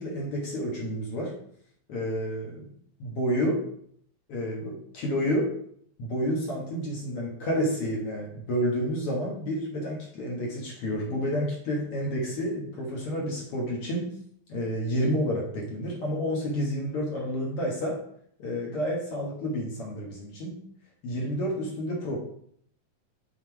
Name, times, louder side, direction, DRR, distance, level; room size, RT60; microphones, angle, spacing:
voice 1, 0.0-1.3 1.9-2.7 3.0-3.6 4.3-5.5 6.0-14.1 14.5-18.0 18.4-20.6 21.0-22.2, equal, 55° left, -2 dB, 1.7 m, -30 dB
5.8 x 4.5 x 4.5 m, 0.65 s
omnidirectional pair, 4.2 m